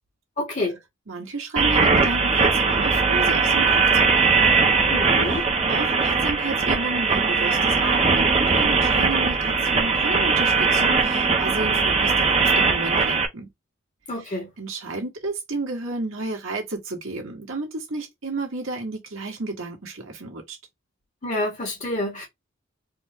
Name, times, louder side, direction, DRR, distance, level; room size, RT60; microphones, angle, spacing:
voice 1, 0.4-0.8 4.9-5.4 14.1-14.5 21.2-22.3, left 1 dB, 35° left, 1.0 m, -28 dB
voice 2, 1.1-4.5 5.7-13.5 14.2-20.6, right 3 dB, 80° right, 1.6 m, -32 dB
sound 1, 1.6-13.3, right 4 dB, 30° right, 0.7 m, -20 dB
4.4 x 2.2 x 3.5 m
head